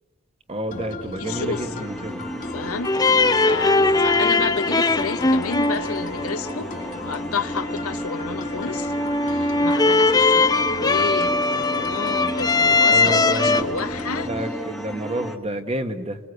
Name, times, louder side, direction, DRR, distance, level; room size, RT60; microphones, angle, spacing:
voice 1, 0.5-2.3 12.9-13.6 14.2-16.2, right 1 dB, 30° right, 1.5 m, -29 dB
sound 1, 0.7-14.4, left 3 dB, 40° left, 1.7 m, -37 dB
voice 2, 1.2-1.8 2.5-6.8 7.0-8.9 9.3-14.3, left 4 dB, 85° left, 1.2 m, -30 dB
sound 2, 1.2-15.4, equal, ahead, 1.5 m, -34 dB
sound 3, 2.8-13.6, left 3 dB, 20° left, 0.8 m, -21 dB
29.0 x 21.5 x 8.2 m
head